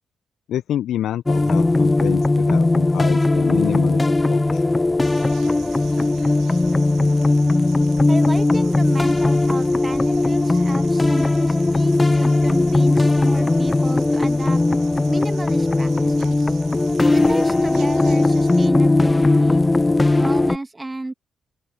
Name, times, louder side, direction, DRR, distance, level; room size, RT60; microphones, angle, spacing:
voice 1, 0.5-4.4, left 11 dB, 70° left, 0.8 m, -27 dB
sound 1, 1.3-20.6, left 2 dB, 25° left, 0.3 m, -18 dB
sound 2, 5.0-18.7, right 12 dB, 75° right, 3.0 m, -44 dB
voice 2, 8.1-14.6 15.1-16.6 17.1-19.6 20.2-21.1, right 2 dB, 20° right, 2.3 m, -32 dB
open air
hypercardioid pair, 40°, 0 cm